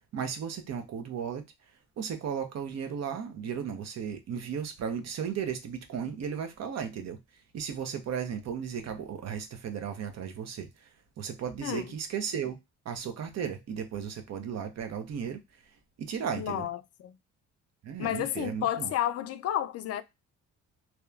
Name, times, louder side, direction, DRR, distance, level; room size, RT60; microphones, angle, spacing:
voice 1, 0.1-1.4 2.0-7.2 7.5-10.9 11.2-12.6 12.8-15.6 16.0-16.7 17.8-18.9, right 7 dB, 60° right, 0.7 m, -35 dB
voice 2, 16.4-17.2 18.0-20.0, left 11 dB, 55° left, 0.4 m, -31 dB
2.8 x 2.2 x 2.3 m
cardioid pair, 90°, 30 cm